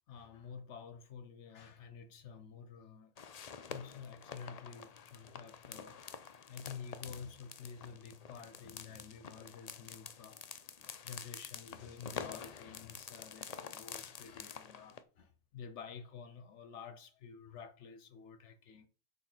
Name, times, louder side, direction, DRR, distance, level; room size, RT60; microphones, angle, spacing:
voice 1, 0.1-3.1 3.7-6.0 6.5-10.4 10.7-18.9, left 6 dB, 70° left, 1.0 m, -50 dB
sound 1, 3.2-15.0, left 6 dB, 50° left, 0.5 m, -48 dB
6.3 x 3.7 x 5.9 m
omnidirectional pair, 1.3 m